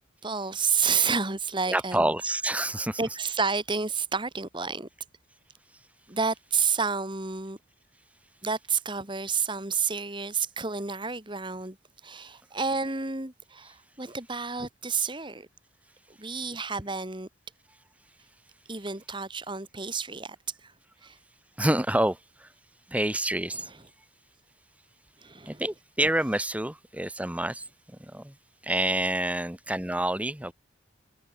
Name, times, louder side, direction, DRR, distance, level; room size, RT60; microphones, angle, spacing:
voice 1, 0.2-2.0 3.0-4.9 6.1-7.6 8.4-11.8 12.0-15.5 16.2-17.3 18.7-20.4 20.6-20.7 21.0-21.2 25.2-25.6, right 5 dB, 25° right, 2.2 m, -30 dB
voice 2, 1.7-3.0 21.6-22.5 22.9-23.7 25.5-27.6 28.0-28.3 28.6-30.5, right 1 dB, 5° right, 1.1 m, -28 dB
head